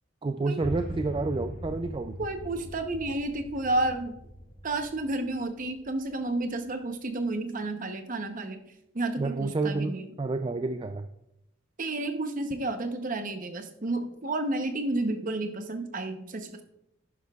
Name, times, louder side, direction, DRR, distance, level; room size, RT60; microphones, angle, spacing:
voice 1, 0.2-2.2 9.2-11.1, right 3 dB, 25° right, 8 dB, 0.3 m, -29 dB
Cinematic Hit, 0.6-6.7, equal, 35° left, 1.5 m, -41 dB
voice 2, 2.2-4.1 4.6-8.6 8.9-10.1 11.8-16.6, right 2 dB, 40° right, 7 dB, 0.8 m, -31 dB
10.5 x 10.5 x 2.4 m, 0.83 s
head